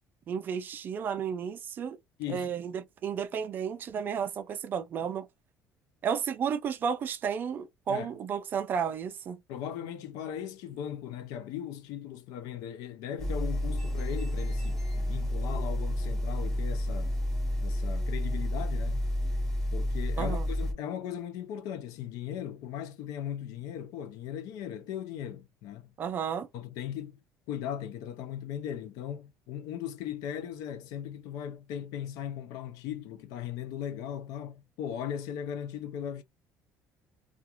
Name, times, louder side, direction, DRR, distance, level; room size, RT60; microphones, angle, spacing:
voice 1, 0.3-2.0 2.3-5.3 6.0-9.4 20.2-20.5 26.0-26.5, right 7 dB, 30° right, 0.4 m, -32 dB
voice 2, 2.2-2.5 7.9-8.1 9.5-17.1 17.6-19.0 19.7-25.9 26.5-27.2 27.5-36.2, left 9 dB, 75° left, 0.5 m, -38 dB
sound 1, 13.2-20.7, left 1 dB, 5° left, 1.0 m, -30 dB
2.4 x 2.4 x 2.8 m
cardioid pair, 165°, 6 cm